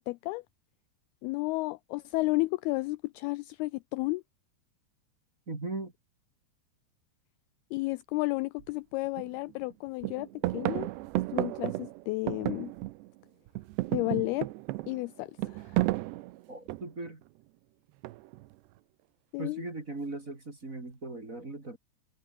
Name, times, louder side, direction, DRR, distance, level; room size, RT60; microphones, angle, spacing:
voice 1, 0.1-0.4 1.2-4.2 7.7-10.3 10.5-10.9 11.3-12.7 13.9-14.5 14.9-15.8 19.3-19.7, left 22 dB, 85° left, 2.3 m, -32 dB
voice 2, 5.5-5.9 16.5-17.2 19.4-21.8, right 2 dB, 20° right, 2.8 m, -38 dB
sound 1, 8.6-8.7 9.2-9.7 10.0-13.2 13.5-17.1 18.0-18.5, right 19 dB, 85° right, 2.9 m, -33 dB
omnidirectional pair, 4.9 m